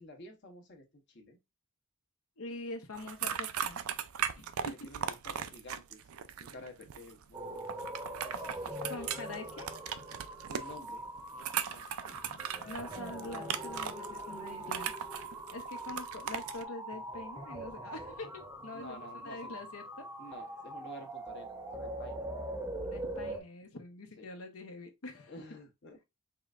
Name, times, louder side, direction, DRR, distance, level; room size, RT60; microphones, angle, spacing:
voice 1, 0.0-1.4 4.8-6.0 6.4-7.7 10.4-11.0 11.3-11.9 18.7-19.5 20.2-22.2 24.2-24.3 25.3-26.0, left 1 dB, 55° left, 1.0 m, -50 dB
voice 2, 2.4-3.8 4.3-4.9 8.8-9.7 12.6-14.9 15.5-20.1 22.8-25.3, left 2 dB, 75° left, 1.0 m, -45 dB
sound 1, 2.9-16.6, right 8 dB, 80° right, 0.5 m, -38 dB
sound 2, 7.3-23.4, right 1 dB, 10° right, 0.7 m, -42 dB
4.8 x 3.2 x 2.4 m
head